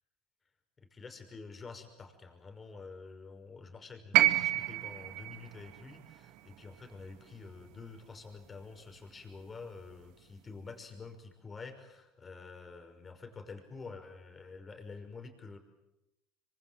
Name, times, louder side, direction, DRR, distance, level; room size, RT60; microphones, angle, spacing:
voice 1, 0.9-15.6, left 4 dB, 25° left, 6 dB, 5.7 m, -48 dB
sound 1, 4.1-8.3 9.5-9.6, right 16 dB, 60° right, 1.7 m, -31 dB
26.0 x 25.5 x 7.7 m, 0.90 s
hypercardioid pair, 75°, 0 cm